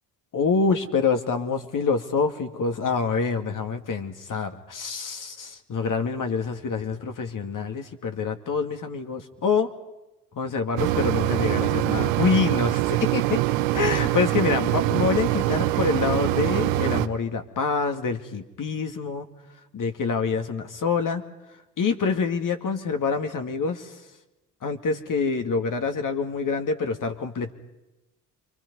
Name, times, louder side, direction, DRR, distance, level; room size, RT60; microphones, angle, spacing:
voice 1, 0.3-9.7 10.4-13.4 13.7-19.3 19.7-21.2 21.8-23.9 24.6-27.5, left 5 dB, 40° left, 6 dB, 2.3 m, -26 dB
Mechanisms, 10.8-17.1, right 15 dB, 65° right, 1.1 m, -24 dB
30.0 x 25.5 x 5.5 m, 0.98 s
figure-of-eight pair, 50°, 47 cm